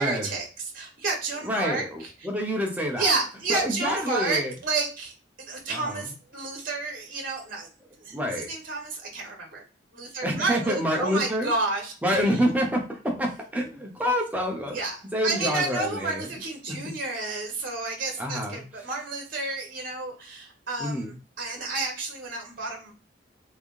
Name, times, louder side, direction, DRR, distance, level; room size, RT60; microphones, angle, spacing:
voice 1, 0.0-2.1 3.0-5.1 5.5-7.7 8.0-9.6 9.9-11.9 12.3-12.4 14.7-15.0 15.2-22.9, right 3 dB, 45° right, 1 dB, 1.2 m, -30 dB
voice 2, 1.4-3.1 3.5-4.5 5.7-6.1 8.1-8.5 10.2-11.5 12.0-14.8 15.1-16.3 16.7-16.8 18.2-18.6 20.8-21.1, equal, 10° right, 0 dB, 0.8 m, -27 dB
3.6 x 3.4 x 2.5 m, 0.35 s
head